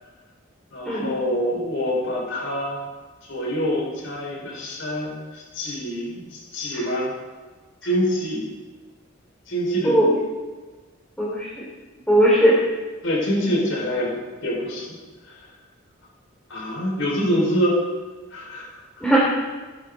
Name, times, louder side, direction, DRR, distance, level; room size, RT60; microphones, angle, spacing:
voice 1, 0.7-2.8 3.3-7.1 7.8-8.5 9.5-10.0 13.0-14.1 14.4-14.9 15.3-15.4 16.5-17.8 18.3-18.8, equal, 70° left, -3 dB, 5.1 m, -25 dB
voice 2, 9.8-10.2 11.2-11.6 12.1-12.6 19.0-19.2, right 1 dB, 5° left, -6 dB, 2.8 m, -18 dB
18.0 x 12.0 x 4.1 m, 1.3 s
head